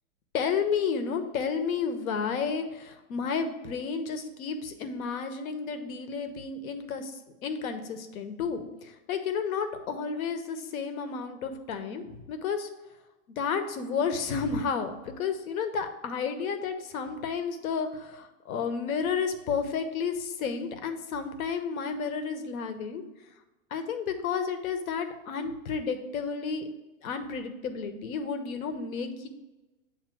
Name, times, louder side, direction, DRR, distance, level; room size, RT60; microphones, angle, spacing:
voice 1, 0.3-7.1 7.4-12.7 13.4-23.0 23.7-26.6 27.0-29.3, left 6 dB, 80° left, 8 dB, 1.0 m, -31 dB
8.0 x 2.8 x 6.0 m, 1.1 s
supercardioid pair, 155°, 42 cm